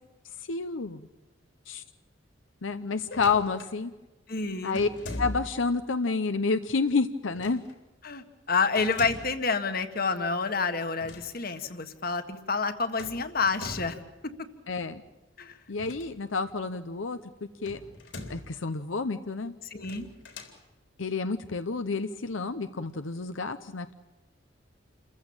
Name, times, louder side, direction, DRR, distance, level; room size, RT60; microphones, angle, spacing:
voice 1, 0.4-1.1 1.7-1.8 2.6-3.9 4.6-4.9 5.2-7.6 14.7-15.0 15.7-17.2 17.6-17.8 18.2-19.5 21.0-23.9, left 4 dB, 85° left, 10 dB, 0.8 m, -29 dB
sound 1, 3.0-3.8 4.7-5.7 7.3-7.8 8.8-9.4 10.9-11.3 11.6-11.7 13.0-14.1 15.7-16.5 17.6-18.6 19.7-20.6, left 2 dB, 65° left, 3.6 m, -41 dB
voice 2, 4.3-4.8 8.0-14.0 15.4-15.6 19.7-20.1, left 4 dB, 50° left, 9 dB, 1.7 m, -29 dB
28.5 x 15.0 x 8.9 m, 1.1 s
head